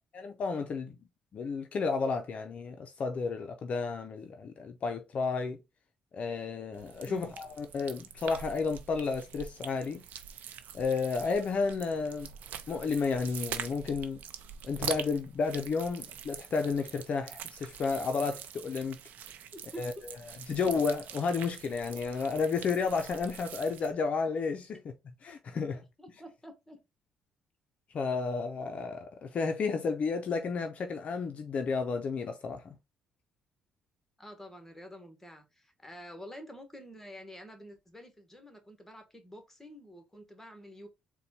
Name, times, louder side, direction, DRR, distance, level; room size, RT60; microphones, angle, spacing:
voice 1, 0.2-1.0 1.3-5.6 6.1-10.0 10.7-12.3 12.7-14.2 14.6-19.0 19.8-19.9 20.5-24.8 25.2-25.8 27.9-32.7, left 4 dB, 50° left, 0.5 m, -32 dB
sound 1, 6.7-23.9, right 9 dB, 70° right, 0.6 m, -44 dB
voice 2, 7.0-7.4 19.5-20.0 20.5-20.6 25.8-26.8 34.2-40.9, equal, 10° left, 1.2 m, -48 dB
4.1 x 2.2 x 4.1 m
cardioid pair, 90°, 3 cm